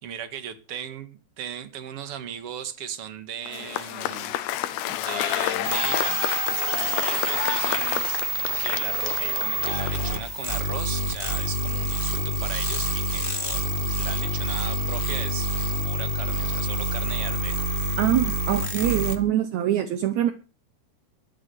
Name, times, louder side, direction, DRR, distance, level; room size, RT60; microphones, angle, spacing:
voice 1, 0.0-4.4 4.7-6.2 6.7-8.3 8.6-15.5 15.9-17.7, right 9 dB, 50° right, 10 dB, 1.9 m, -37 dB
Cheering / Applause / Crowd, 3.5-10.5, left 13 dB, 85° left, 3.0 m, -29 dB
sound 1, 5.6-19.2, right 2 dB, 25° left, 1.1 m, -27 dB
voice 2, 18.0-20.3, right 11 dB, 75° right, 10 dB, 1.7 m, -24 dB
12.5 x 8.5 x 9.2 m, 0.36 s
omnidirectional pair, 4.6 m